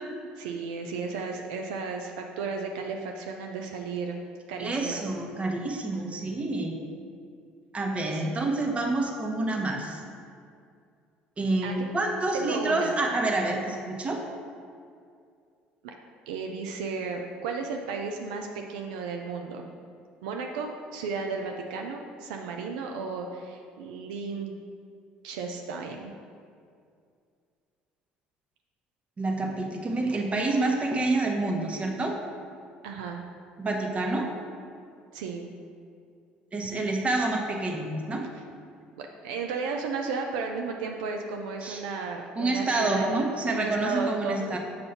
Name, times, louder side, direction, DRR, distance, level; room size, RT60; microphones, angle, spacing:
voice 1, 0.4-4.2 4.5-5.0 11.6-11.8 12.3-13.0 15.8-15.9 16.3-19.7 20.2-24.5 25.2-26.1 32.8-33.2 35.1-35.5 39.0-43.2 43.5-44.6, right 4 dB, 85° right, 2 dB, 0.4 m, -34 dB
voice 2, 4.6-6.8 7.7-10.0 11.4-14.2 29.2-32.2 33.6-34.3 36.5-38.2 41.6-41.8 42.4-44.6, right 2 dB, 30° right, 1 dB, 1.0 m, -28 dB
6.7 x 2.7 x 5.6 m, 2.3 s
hypercardioid pair, 70°, 4 cm